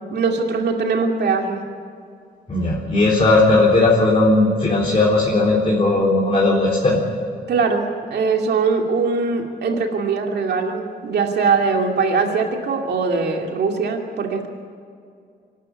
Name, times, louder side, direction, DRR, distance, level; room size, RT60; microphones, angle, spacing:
voice 1, 0.1-1.6 7.5-14.5, right 4 dB, 85° right, 2 dB, 2.6 m, -21 dB
voice 2, 2.5-7.0, left 2 dB, 35° left, -4 dB, 4.1 m, -17 dB
25.5 x 12.0 x 9.8 m, 2.3 s
cardioid pair, 100°, 17 cm